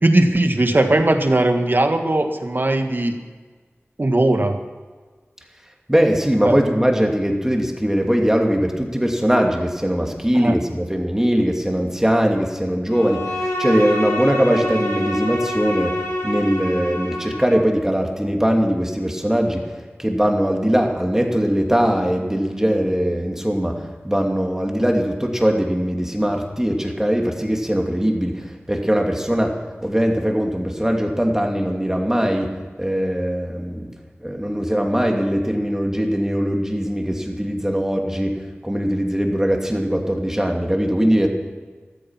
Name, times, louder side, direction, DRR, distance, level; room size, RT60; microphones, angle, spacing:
voice 1, 0.0-3.1 4.0-4.6 6.5-6.6 10.4-10.6, right 1 dB, 50° right, 5 dB, 1.7 m, -18 dB
voice 2, 5.9-19.7 20.0-33.9 34.2-41.3, equal, 10° right, 1 dB, 2.7 m, -21 dB
Bowed string instrument, 12.9-17.7, left 1 dB, 75° left, 3.8 m, -26 dB
14.0 x 13.5 x 5.9 m, 1.4 s
wide cardioid pair, 50°, 5 cm